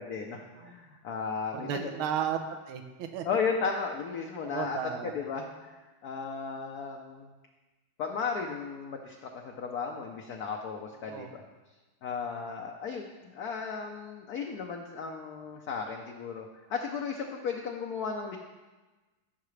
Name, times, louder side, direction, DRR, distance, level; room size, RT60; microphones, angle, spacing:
voice 1, 0.0-1.9 3.2-7.3 8.0-11.4 12.0-18.4, left 5 dB, 65° left, 2 dB, 0.9 m, -35 dB
voice 2, 1.5-2.4 2.7-3.3 4.4-5.1 11.0-11.3, right 9 dB, 85° right, 5 dB, 1.6 m, -34 dB
14.0 x 5.7 x 3.2 m, 1.2 s
omnidirectional pair, 2.3 m